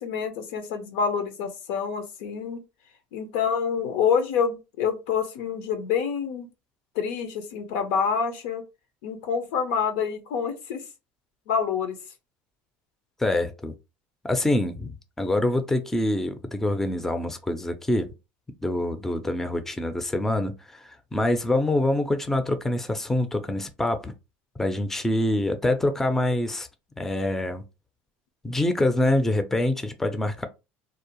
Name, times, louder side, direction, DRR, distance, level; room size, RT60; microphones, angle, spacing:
voice 1, 0.0-2.6 3.1-6.5 7.0-8.6 9.0-10.8 11.5-12.0, left 6 dB, 80° left, 0.6 m, -27 dB
voice 2, 13.2-13.7 14.2-14.9 15.2-18.1 18.6-24.1 24.6-26.7 27.0-27.6 28.4-30.5, left 1 dB, 5° left, 0.4 m, -25 dB
2.6 x 2.0 x 2.9 m
supercardioid pair, 125°, 5 cm